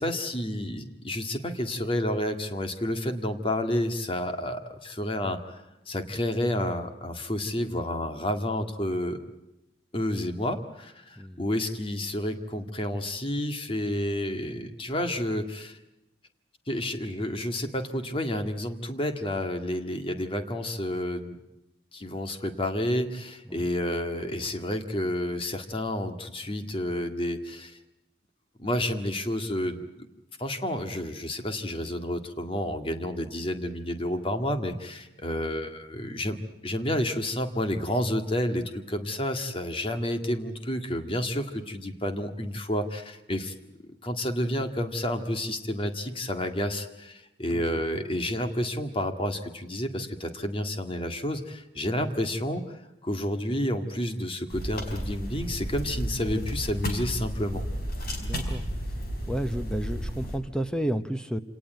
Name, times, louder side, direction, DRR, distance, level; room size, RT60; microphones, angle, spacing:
voice 1, 0.0-9.2 9.9-15.8 16.7-21.4 21.9-27.8 28.6-29.9 30.4-36.4 36.6-43.5 44.0-57.6, left 1 dB, 30° left, 7 dB, 1.9 m, -30 dB
sound 1, 54.5-60.4, equal, 50° left, 4.6 m, -33 dB
voice 2, 58.2-58.6 59.3-61.4, right 1 dB, 5° left, 10 dB, 0.8 m, -31 dB
27.0 x 18.5 x 9.2 m, 0.97 s
head